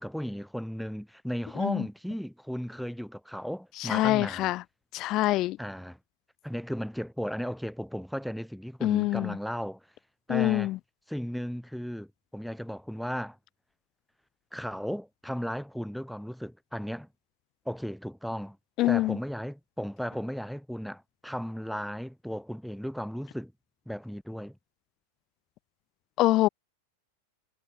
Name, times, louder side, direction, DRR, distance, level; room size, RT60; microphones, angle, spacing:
voice 1, 0.0-4.5 5.6-6.0 6.4-9.8 10.3-10.8 11.1-13.4 14.5-17.1 17.7-18.6 18.9-23.5 23.9-24.6, equal, ahead, 2.2 m, -35 dB
voice 2, 3.8-4.6 4.9-5.6 8.8-9.4 10.3-10.8 18.8-19.2 26.2-26.5, left 17 dB, 35° left, 0.8 m, -25 dB
figure-of-eight pair, 90°, 0 cm